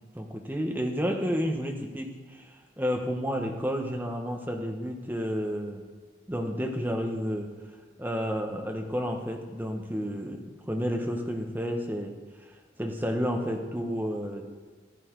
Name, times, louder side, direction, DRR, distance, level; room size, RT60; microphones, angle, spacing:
voice 1, 0.1-5.8 6.3-7.5 8.0-12.1 12.8-14.4, equal, 10° right, 2 dB, 1.2 m, -31 dB
15.0 x 9.0 x 4.7 m, 1.4 s
head